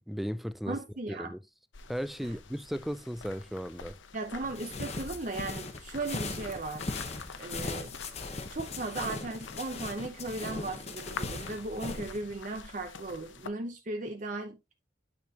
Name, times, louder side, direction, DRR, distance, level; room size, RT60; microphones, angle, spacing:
voice 1, 0.1-0.8 1.1-1.4 1.9-4.0, equal, ahead, 0.3 m, -35 dB
voice 2, 0.7-1.3 2.2-2.4 4.1-6.8 7.4-8.0 8.5-14.6, right 2 dB, 40° right, 0.7 m, -37 dB
sound 1, 1.7-13.5, left 5 dB, 80° left, 0.8 m, -48 dB
sound 2, 4.4-12.2, left 3 dB, 35° left, 0.9 m, -39 dB
9.2 x 5.1 x 2.8 m
head